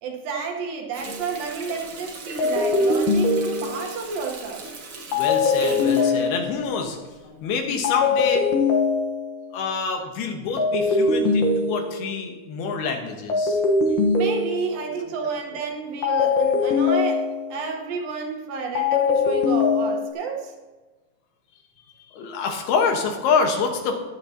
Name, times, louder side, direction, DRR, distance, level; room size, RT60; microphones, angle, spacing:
voice 1, 0.0-4.7 14.2-20.5, right 5 dB, 70° right, 1 dB, 2.9 m, -31 dB
Water tap faucet, 0.9-7.3 7.7-7.9, right 3 dB, 55° right, 1.5 m, -39 dB
sound 1, 1.1-1.4 2.4-4.1 5.1-6.8 7.8-9.5 10.6-12.3 13.3-15.0 16.0-17.7 18.8-20.1, left 4 dB, 65° left, 2.6 m, -22 dB
voice 2, 5.1-7.0 7.2-8.4 9.5-13.6 22.1-24.0, left 5 dB, 90° left, 3 dB, 3.3 m, -26 dB
14.5 x 11.0 x 2.9 m, 1.2 s
omnidirectional pair, 4.5 m